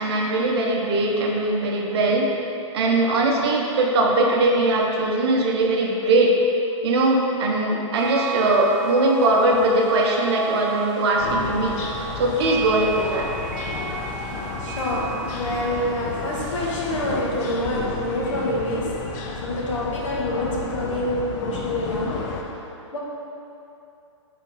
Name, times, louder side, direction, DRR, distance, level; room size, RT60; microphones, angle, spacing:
voice 1, 0.0-2.3 2.7-6.4 6.8-11.8 12.2-13.3, right 2 dB, 55° right, -1 dB, 0.9 m, -20 dB
sound 1, 7.9-17.2, right 6 dB, 35° right, 0.5 m, -33 dB
sound 2, 11.2-22.4, left 4 dB, 35° left, 0.6 m, -32 dB
voice 2, 14.6-22.5 22.9-23.0, left 1 dB, 70° left, -4 dB, 1.5 m, -27 dB
6.1 x 4.1 x 4.2 m, 2.8 s
hypercardioid pair, 145°, 16 cm